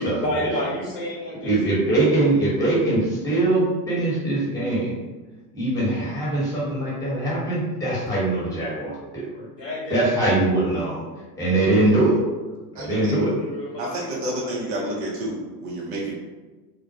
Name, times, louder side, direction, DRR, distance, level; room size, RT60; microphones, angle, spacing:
voice 1, 0.0-1.6 1.9-2.6 9.6-10.3 12.9-14.9, equal, 80° left, -7 dB, 1.0 m, -31 dB
voice 2, 1.4-5.0 5.5-9.2 9.9-11.0 11.4-12.2 12.7-13.3, right 2 dB, 5° left, -7 dB, 1.1 m, -22 dB
voice 3, 12.7-13.1 13.8-16.1, right 1 dB, 45° right, -4 dB, 0.7 m, -30 dB
2.2 x 2.1 x 2.8 m, 1.2 s
hypercardioid pair, 85°, 48 cm